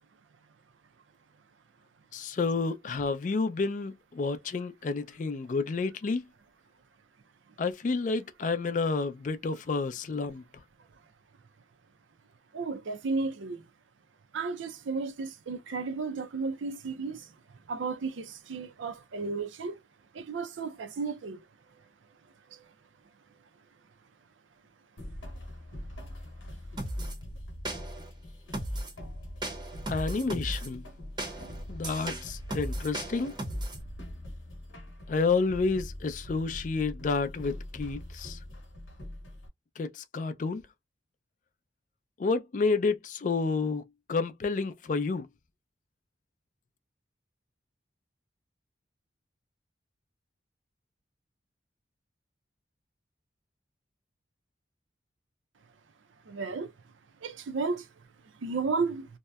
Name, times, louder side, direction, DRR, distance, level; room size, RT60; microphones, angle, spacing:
voice 1, 2.1-6.2 7.6-10.4 29.9-30.8 31.7-33.3 35.1-38.4 39.8-40.6 42.2-43.8 44.1-45.3, left 4 dB, 40° left, 0.3 m, -30 dB
voice 2, 12.5-13.6 14.3-17.3 17.7-19.8 20.1-21.4 56.3-56.7 57.2-57.9 58.4-59.1, right 4 dB, 85° right, 0.5 m, -33 dB
sound 1, 25.0-39.5, left 1 dB, 90° left, 0.9 m, -43 dB
sound 2, 26.8-27.2 27.7-28.1 28.5-29.0 29.4-30.7 31.2-33.8, right 1 dB, 25° right, 0.6 m, -36 dB
2.7 x 2.0 x 2.2 m
head